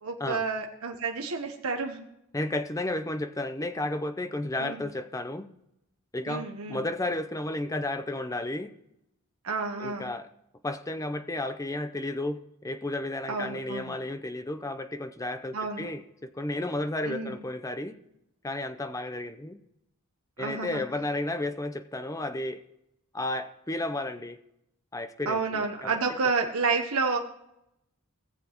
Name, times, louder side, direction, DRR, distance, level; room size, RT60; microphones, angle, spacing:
voice 1, 0.0-2.1 4.6-4.8 6.3-6.8 9.4-10.1 13.3-14.0 15.5-15.9 17.0-17.4 20.4-20.8 25.3-27.2, right 4 dB, 75° right, 3 dB, 1.0 m, -30 dB
voice 2, 2.3-5.5 6.1-8.7 9.8-10.3 10.6-18.0 18.4-19.6 20.4-22.6 23.1-24.4 24.9-26.0, left 2 dB, 15° left, 9 dB, 0.6 m, -33 dB
17.5 x 7.5 x 3.0 m, 0.83 s
head